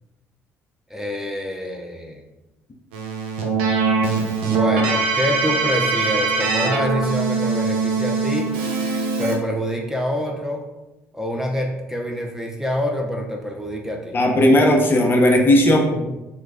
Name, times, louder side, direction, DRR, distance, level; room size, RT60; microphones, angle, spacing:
voice 1, 0.9-2.2 4.4-8.5 9.2-10.6 11.1-14.1 15.9-16.1, equal, 5° right, 1 dB, 0.6 m, -26 dB
Keyboard (musical), 2.9-9.4, right 4 dB, 85° right, 0.5 m, -22 dB
voice 2, 14.1-15.9, left 1 dB, 35° left, 1 dB, 0.7 m, -15 dB
3.0 x 2.3 x 3.5 m, 0.96 s
hypercardioid pair, 60°, 6 cm